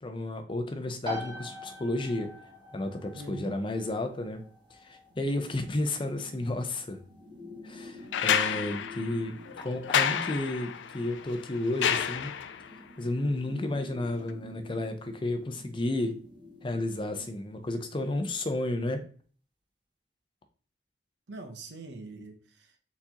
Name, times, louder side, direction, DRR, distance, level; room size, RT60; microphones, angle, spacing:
voice 1, 0.0-2.3 2.7-4.4 4.7-7.0 7.6-12.3 13.0-16.2 16.6-19.0, left 1 dB, 30° left, 7 dB, 0.5 m, -32 dB
sound 1, 1.0-15.5, left 1 dB, 25° right, 0.9 m, -47 dB
voice 2, 3.1-3.5 21.3-22.8, right 2 dB, 70° right, 6 dB, 0.7 m, -43 dB
sound 2, 5.0-17.5, left 2 dB, 45° right, 1.6 m, -50 dB
sound 3, 8.1-12.7 14.3-14.4, left 8 dB, 85° left, 0.4 m, -30 dB
4.5 x 4.1 x 2.8 m, 0.43 s
head